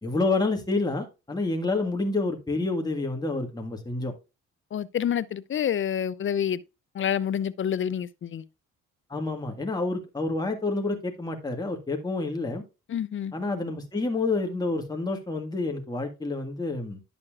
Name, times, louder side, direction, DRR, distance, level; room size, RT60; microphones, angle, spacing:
voice 1, 0.0-4.1 9.1-12.6 13.3-17.0, left 3 dB, 15° left, 1.7 m, -28 dB
voice 2, 4.7-6.6 6.9-8.4 12.9-13.3, left 9 dB, 40° left, 0.6 m, -28 dB
10.5 x 7.0 x 2.4 m
cardioid pair, 90°, 30 cm